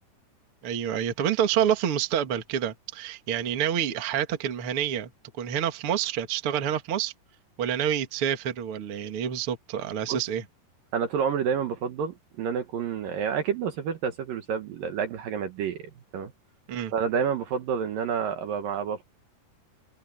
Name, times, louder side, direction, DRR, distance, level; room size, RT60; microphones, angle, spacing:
voice 1, 0.6-5.1 5.4-7.1 7.6-10.4 16.7-16.9, right 9 dB, 50° right, 1.7 m, -28 dB
voice 2, 10.9-16.3 16.9-19.0, right 7 dB, 65° right, 2.5 m, -29 dB
open air
omnidirectional pair, 5.1 m